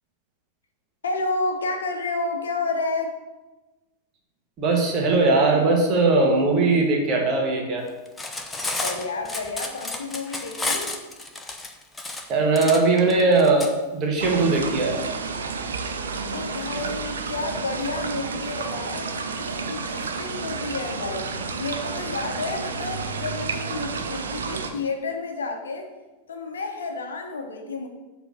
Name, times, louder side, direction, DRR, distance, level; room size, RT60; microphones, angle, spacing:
voice 1, 1.0-3.1 8.8-11.0 16.3-21.3 21.6-25.9 26.3-27.9, left 3 dB, 70° left, 4 dB, 0.9 m, -30 dB
voice 2, 4.6-7.9 12.3-15.0, right 3 dB, 30° right, 0 dB, 1.5 m, -20 dB
Cutlery silverware, 8.1-13.7, left 2 dB, 10° left, 0.8 m, -31 dB
sound 1, 14.2-24.7, right 4 dB, 70° right, 0.6 m, -31 dB
7.0 x 3.5 x 6.1 m, 1.1 s
figure-of-eight pair, 90°, 0 cm